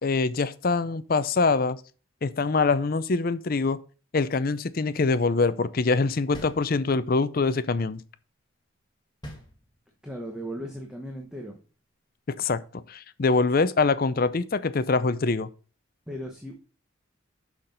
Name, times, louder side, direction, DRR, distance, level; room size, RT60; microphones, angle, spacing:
voice 1, 0.0-1.8 2.2-3.8 4.1-8.0 12.4-15.5, left 4 dB, 45° left, 0.5 m, -24 dB
sound 1, 6.3-7.3 9.2-10.1, equal, 20° left, 1.7 m, -43 dB
voice 2, 10.0-11.6 16.1-16.6, equal, 5° right, 1.0 m, -37 dB
6.4 x 5.9 x 5.2 m
head